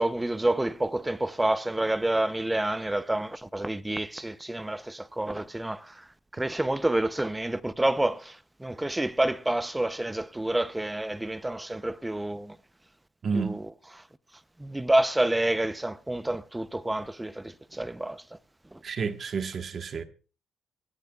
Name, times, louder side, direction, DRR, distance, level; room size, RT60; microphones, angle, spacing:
voice 1, 0.0-12.6 13.3-13.7 14.0-14.1 14.6-18.4 18.7-18.8, right 1 dB, 10° right, 0.6 m, -28 dB
voice 2, 13.2-13.5 18.8-20.0, right 5 dB, 50° right, 1.3 m, -30 dB
23.5 x 10.5 x 2.3 m
cardioid pair, 90°, 0 cm